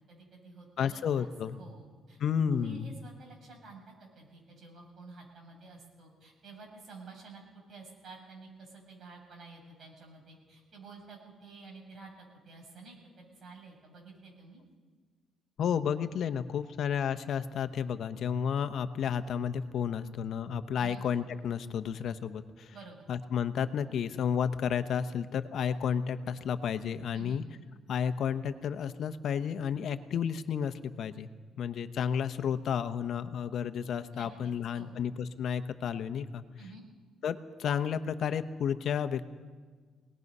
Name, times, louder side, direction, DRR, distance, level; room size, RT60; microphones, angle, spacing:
voice 1, 0.1-2.2 2.5-7.4 7.7-14.6 20.8-21.0 22.7-23.1 27.1-27.4 34.1-35.0 36.6-36.8, right 3 dB, 55° right, 0 dB, 7.4 m, -51 dB
voice 2, 0.8-1.6 2.2-2.9 15.6-22.7 23.1-27.4 27.9-31.3 31.6-36.4 37.2-39.3, left 7 dB, 65° left, 10 dB, 0.9 m, -32 dB
25.0 x 19.0 x 5.5 m, 1.5 s
cardioid pair, 90°, 0 cm